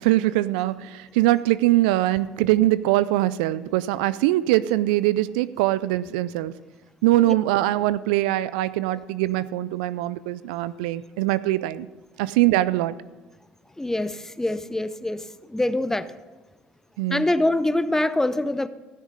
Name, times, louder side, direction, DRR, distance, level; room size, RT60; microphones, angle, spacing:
voice 1, 0.0-6.5 7.0-11.9 12.2-12.9 17.0-17.3, right 16 dB, 85° right, 17 dB, 0.3 m, -22 dB
voice 2, 13.8-16.1 17.1-18.7, left 1 dB, 10° left, 12 dB, 0.7 m, -24 dB
15.0 x 6.5 x 5.3 m, 1.2 s
hypercardioid pair, 65°, 5 cm